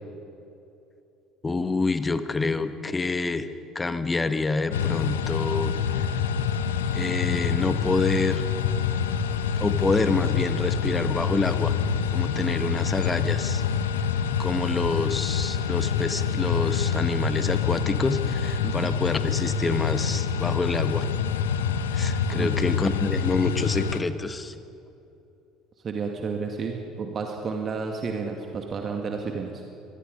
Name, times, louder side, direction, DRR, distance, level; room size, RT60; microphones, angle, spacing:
voice 1, 1.4-3.5 3.7-6.1 6.9-8.4 9.6-11.7 12.1-13.6 14.4-21.1 21.9-24.5, left 3 dB, 20° left, 11 dB, 1.4 m, -27 dB
sound 1, 4.7-24.0, left 7 dB, 75° left, 1.0 m, -26 dB
voice 2, 22.3-22.8 25.8-29.6, right 5 dB, 40° right, 2 dB, 2.2 m, -31 dB
24.5 x 20.0 x 5.4 m, 2.8 s
figure-of-eight pair, 60°, 0 cm